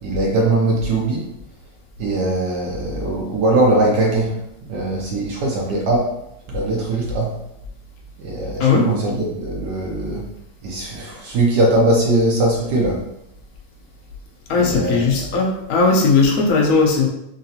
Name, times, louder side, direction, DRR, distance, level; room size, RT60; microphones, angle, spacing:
voice 1, 0.0-1.3 2.0-4.3 4.7-6.1 6.5-7.3 8.2-10.2 10.6-13.0 14.6-15.1, right 2 dB, 70° right, -1 dB, 1.2 m, -20 dB
voice 2, 8.6-8.9 14.5-17.1, left 4 dB, 60° left, -1 dB, 1.0 m, -17 dB
3.8 x 3.1 x 2.7 m, 0.81 s
omnidirectional pair, 2.2 m